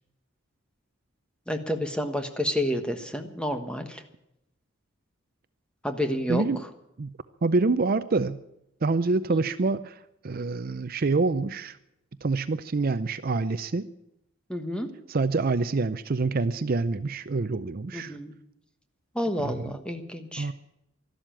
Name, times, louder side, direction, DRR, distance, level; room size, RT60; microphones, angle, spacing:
voice 1, 1.5-4.0 5.8-6.4 14.5-14.9 17.9-18.3 19.1-20.5, equal, 5° left, 6 dB, 1.3 m, -29 dB
voice 2, 6.3-6.6 7.0-7.1 7.4-8.4 8.8-11.8 12.2-13.9 15.1-18.2 19.4-19.8 20.4-20.5, right 3 dB, 45° right, 13 dB, 0.5 m, -26 dB
13.0 x 12.0 x 8.9 m, 0.82 s
head